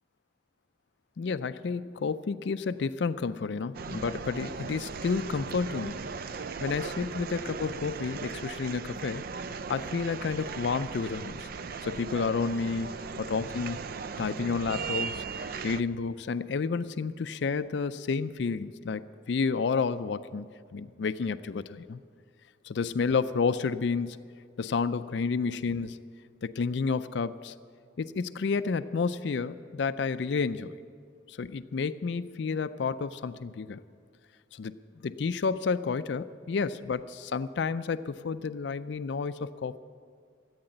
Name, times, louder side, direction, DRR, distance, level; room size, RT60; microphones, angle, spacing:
voice 1, 1.2-6.0 6.6-9.2 9.7-11.5 11.8-13.8 14.2-15.2 15.6-19.0 19.3-22.0 22.6-24.2 24.6-26.0 26.4-27.5 28.0-30.7 31.3-33.8 34.5-34.7 35.0-39.8, left 5 dB, 60° left, 13 dB, 0.4 m, -30 dB
sound 1, 3.7-15.8, right 5 dB, 50° right, 0.4 m, -38 dB
14.5 x 8.8 x 8.9 m, 2.1 s
head